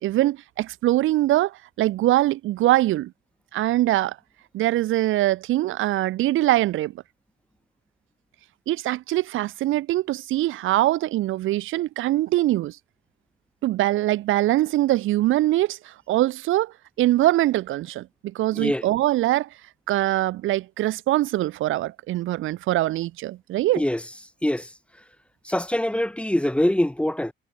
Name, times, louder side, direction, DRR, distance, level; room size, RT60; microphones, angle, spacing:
voice 1, 0.0-3.1 3.5-4.2 4.5-6.9 8.7-12.8 13.6-19.5 19.9-23.8, right 15 dB, 85° right, 2.0 m, -23 dB
voice 2, 25.4-27.3, left 1 dB, 5° left, 1.7 m, -23 dB
cardioid pair, 90°, 20 cm